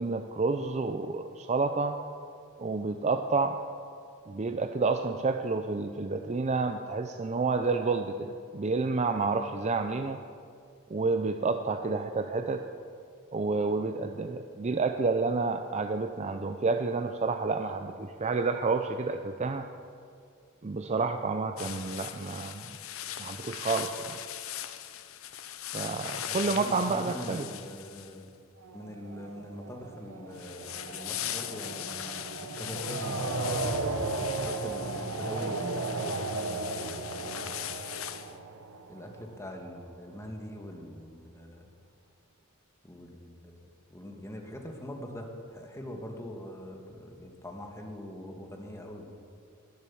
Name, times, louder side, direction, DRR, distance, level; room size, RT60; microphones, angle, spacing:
voice 1, 0.0-1.9 2.6-3.6 4.3-10.2 10.9-12.7 13.3-19.7 20.6-22.7 23.2-24.2 25.7-27.5, right 4 dB, 35° right, 7 dB, 0.5 m, -29 dB
sound 1, 21.6-28.4 30.3-38.3, left 11 dB, 80° left, 0.7 m, -40 dB
voice 2, 26.3-28.2 28.7-33.7 34.2-35.7 37.0-38.1 38.9-41.7 42.8-49.1, left 1 dB, 15° left, 2 dB, 1.6 m, -43 dB
sound 2, 28.6-39.5, right 3 dB, 85° right, 1.1 m, -35 dB
20.0 x 7.7 x 7.1 m, 2.3 s
head